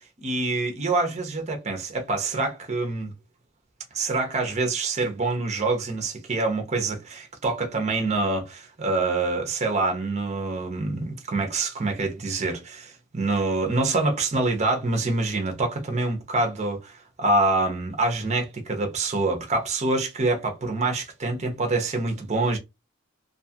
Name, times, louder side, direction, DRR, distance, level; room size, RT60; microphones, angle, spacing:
voice 1, 0.2-3.1 3.9-22.6, right 2 dB, 35° right, 0.7 m, -26 dB
2.6 x 2.4 x 2.7 m
head